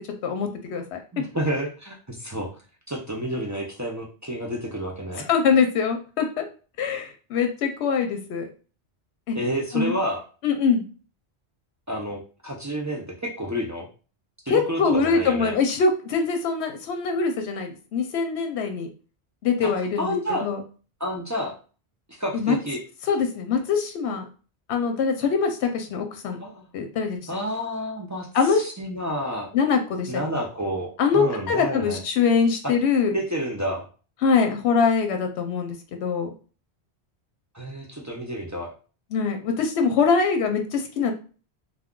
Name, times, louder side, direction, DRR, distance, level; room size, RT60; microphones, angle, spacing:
voice 1, 0.2-1.0 5.2-6.4 6.8-8.5 9.3-9.4 9.7-9.9 10.4-10.8 14.5-18.9 19.4-20.1 20.4-20.6 22.3-22.6 23.1-24.2 24.7-26.4 26.7-27.3 28.3-28.6 29.5-30.2 31.0-33.1 34.2-36.3 39.1-41.1, left 5 dB, 80° left, 5 dB, 0.9 m, -23 dB
voice 2, 1.1-2.5 2.9-5.2 9.3-10.2 11.9-13.9 14.5-15.6 19.6-19.7 20.0-20.5 21.0-21.5 22.2-22.8 26.4-26.7 27.3-29.5 30.1-32.0 32.6-32.7 33.1-33.8 37.5-38.7, equal, 25° right, -2 dB, 0.4 m, -29 dB
2.3 x 2.3 x 3.6 m, 0.37 s
omnidirectional pair, 1.1 m